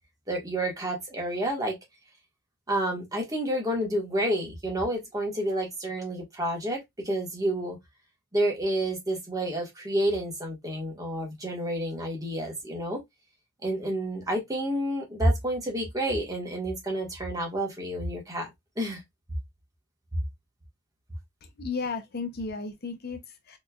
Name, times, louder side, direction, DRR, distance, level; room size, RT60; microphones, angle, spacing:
voice 1, 0.3-1.8 2.7-7.8 8.3-13.0 13.6-19.0, right 1 dB, 20° right, 1.5 m, -29 dB
voice 2, 21.4-23.6, left 4 dB, 55° left, 0.7 m, -34 dB
4.2 x 3.2 x 2.3 m
head